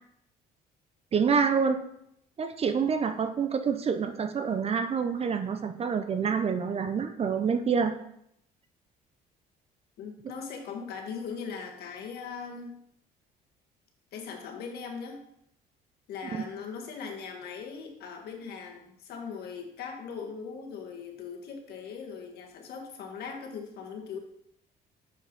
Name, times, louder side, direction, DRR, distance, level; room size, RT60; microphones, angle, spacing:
voice 1, 1.1-1.8 2.4-7.9 16.3-16.4, right 6 dB, 35° right, 8 dB, 0.8 m, -27 dB
voice 2, 10.0-12.8 14.1-15.2 16.1-24.2, left 6 dB, 70° left, 2 dB, 1.8 m, -40 dB
7.0 x 5.5 x 5.4 m, 0.74 s
cardioid pair, 110°, 17 cm